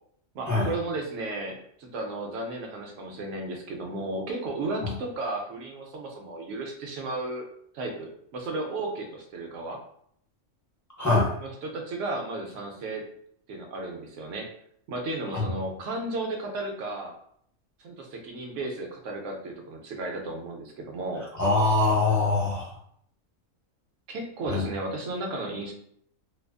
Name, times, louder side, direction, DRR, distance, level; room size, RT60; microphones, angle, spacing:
voice 1, 0.3-7.5 7.7-9.8 11.4-13.0 13.5-14.5 14.9-17.2 17.8-21.3 24.1-25.7, right 2 dB, 70° right, 1 dB, 0.9 m, -34 dB
voice 2, 11.0-11.3 15.3-15.5 21.4-22.7 24.5-24.6, left 2 dB, 20° left, -6 dB, 0.5 m, -23 dB
2.5 x 2.3 x 2.3 m, 0.67 s
omnidirectional pair, 1.4 m